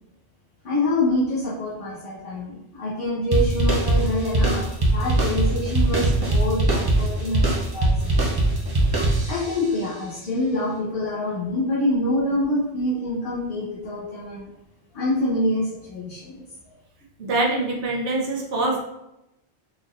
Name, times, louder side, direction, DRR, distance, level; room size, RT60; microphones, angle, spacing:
voice 1, 0.6-8.1 8.9-9.0 9.3-14.4 14.9-16.4, left 1 dB, 55° left, -8 dB, 1.2 m, -26 dB
sound 1, 3.3-9.7, right 2 dB, 25° right, 0.6 m, -21 dB
voice 2, 17.2-18.8, right 2 dB, 80° right, -2 dB, 1.2 m, -24 dB
3.9 x 3.2 x 2.5 m, 0.89 s
omnidirectional pair, 1.1 m